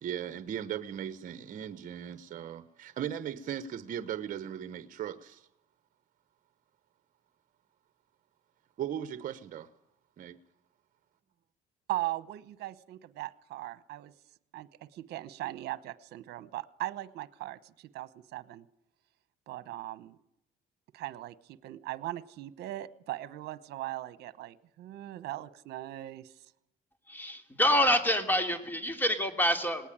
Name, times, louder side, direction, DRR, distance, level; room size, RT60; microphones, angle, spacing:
voice 1, 0.0-5.5 8.8-9.7 10.2-10.4, right 9 dB, 50° right, 1.1 m, -38 dB
voice 2, 11.9-14.1 14.5-18.6 19.5-20.2 20.9-26.5, right 16 dB, 75° right, 1.1 m, -39 dB
voice 3, 27.1-29.9, equal, 10° left, 3.1 m, -27 dB
19.0 x 19.0 x 8.8 m
cardioid pair, 110°, 17 cm